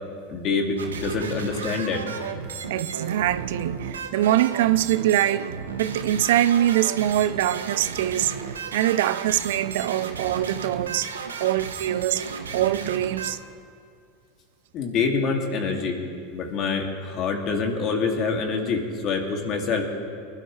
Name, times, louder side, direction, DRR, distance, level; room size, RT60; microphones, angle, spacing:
voice 1, 0.3-2.0 14.7-16.0 16.3-19.9, left 4 dB, 45° left, 2.5 m, -26 dB
sound 1, 0.8-13.3, right 6 dB, 85° right, 1.0 m, -34 dB
voice 2, 2.7-11.1 11.4-12.2 12.5-13.4, right 13 dB, 70° right, 0.4 m, -23 dB
24.5 x 12.0 x 3.3 m
hypercardioid pair, 90°, 0 cm